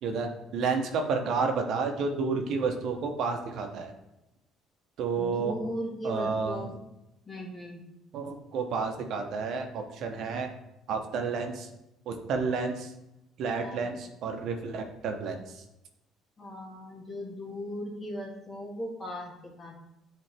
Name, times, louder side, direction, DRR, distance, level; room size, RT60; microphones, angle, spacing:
voice 1, 0.0-3.9 5.0-5.5 6.0-6.7 8.1-10.5 10.9-11.7 12.1-12.9 13.4-15.6, right 4 dB, 65° right, 4 dB, 0.9 m, -30 dB
voice 2, 5.1-6.7 7.3-7.8 13.6-13.9 16.4-19.8, equal, 25° left, -1 dB, 1.7 m, -38 dB
8.8 x 3.4 x 3.4 m, 0.88 s
cardioid pair, 90°, 0 cm